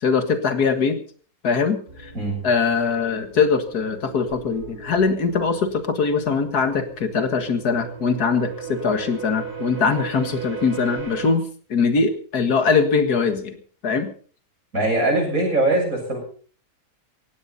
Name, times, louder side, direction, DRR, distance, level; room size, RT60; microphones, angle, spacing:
voice 1, 0.0-1.0 1.4-2.1 2.4-13.6 13.8-14.1, left 5 dB, 90° left, 8 dB, 2.2 m, -22 dB
sound 1, 1.9-11.3, right 6 dB, 80° right, 5.0 m, -37 dB
voice 2, 14.7-16.2, right 2 dB, 60° right, 1 dB, 7.4 m, -21 dB
18.5 x 16.0 x 4.2 m, 0.43 s
omnidirectional pair, 1.6 m